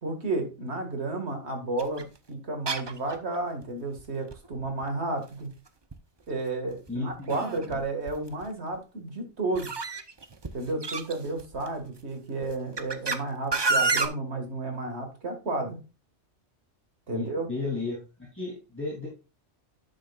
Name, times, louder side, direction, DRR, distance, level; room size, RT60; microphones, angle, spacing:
voice 1, 0.0-5.5 6.3-9.7 10.5-15.8 17.1-17.5, right 2 dB, 65° right, 5 dB, 2.2 m, -32 dB
sound 1, 1.8-2.0 2.7-3.3 3.6-3.7 4.0-4.1 4.3-4.8 5.9-6.0 6.7-7.8 8.1-8.4 9.5-11.7 12.4-13.2 13.5-14.1, right 3 dB, 25° right, 0.6 m, -29 dB
voice 2, 6.9-7.4 17.1-18.0 18.3-19.1, left 3 dB, 10° left, -4 dB, 2.7 m, -33 dB
11.0 x 6.3 x 2.4 m, 0.30 s
omnidirectional pair, 1.2 m